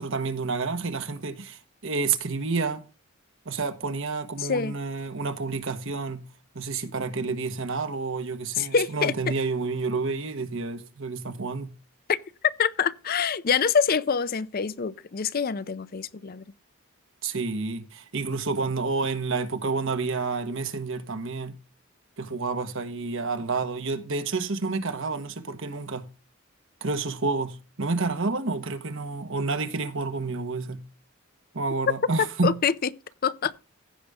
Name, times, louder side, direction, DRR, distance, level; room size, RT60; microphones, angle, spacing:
voice 1, 0.0-2.9 3.4-6.3 6.5-11.7 17.2-21.6 22.2-26.1 26.8-30.8 31.5-32.6, right 4 dB, 60° right, 1.2 m, -29 dB
voice 2, 4.4-4.8 8.6-9.3 12.1-12.2 12.6-16.4 32.4-32.7 33.2-33.5, left 6 dB, 45° left, 0.5 m, -25 dB
15.5 x 5.3 x 3.6 m
head